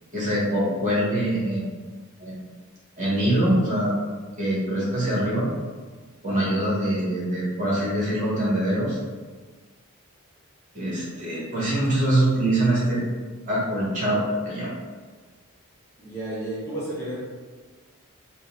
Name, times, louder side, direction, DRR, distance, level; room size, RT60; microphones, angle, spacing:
voice 1, 0.1-1.8 2.2-2.5 3.0-4.0 4.4-5.5 6.2-9.0 10.7-13.0 13.5-14.8, right 1 dB, 35° right, -7 dB, 1.3 m, -24 dB
voice 2, 6.3-6.6 16.0-17.2, right 1 dB, 10° left, -8 dB, 0.7 m, -32 dB
3.9 x 2.2 x 3.9 m, 1.4 s
head